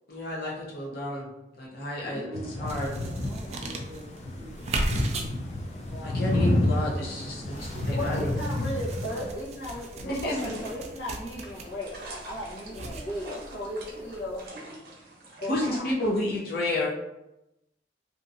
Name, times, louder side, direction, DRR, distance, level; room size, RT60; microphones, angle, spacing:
voice 1, 0.1-1.3 1.6-2.3 2.6-2.9 6.0-8.3 10.0-10.4 15.5-16.9, left 1 dB, 60° left, -5 dB, 0.8 m, -31 dB
voice 2, 2.0-5.3 7.4-8.4 9.3-9.4 9.7-9.8 12.6-14.3 14.7-14.8, right 1 dB, ahead, -8 dB, 0.8 m, -45 dB
sound 1, 2.3-9.3, left 1 dB, 40° left, 0.4 m, -30 dB
sound 2, 2.7-14.4, right 2 dB, 40° right, 0.3 m, -38 dB
voice 3, 5.7-6.6 7.9-14.5 15.4-16.2, left 1 dB, 85° left, -6 dB, 0.9 m, -36 dB
sound 3, 8.3-15.8, right 2 dB, 60° right, 0.8 m, -46 dB
2.8 x 2.6 x 2.5 m, 0.92 s
head